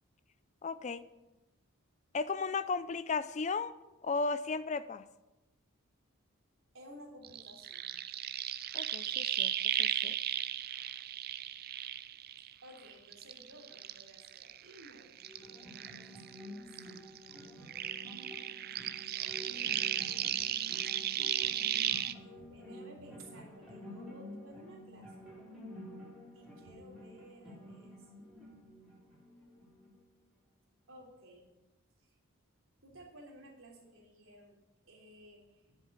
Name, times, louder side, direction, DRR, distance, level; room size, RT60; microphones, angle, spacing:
voice 1, 0.6-1.0 2.1-3.7 4.0-5.0 8.7-9.5 9.8-10.1, left 4 dB, 35° left, 15 dB, 0.4 m, -35 dB
voice 2, 6.7-7.9 12.6-15.1 15.5-17.0 19.1-19.8 22.1-25.3 26.3-28.6 30.9-31.5 32.0-32.2 32.8-34.6 34.9-35.8, right 1 dB, 75° right, -1 dB, 3.3 m, -55 dB
sound 1, 7.2-12.8 13.1-16.5 16.7-22.1, right 11 dB, 45° right, 0.4 m, -35 dB
sound 2, 15.2-30.2, left 1 dB, ahead, 4.4 m, -50 dB
9.8 x 7.3 x 7.9 m, 1.0 s
head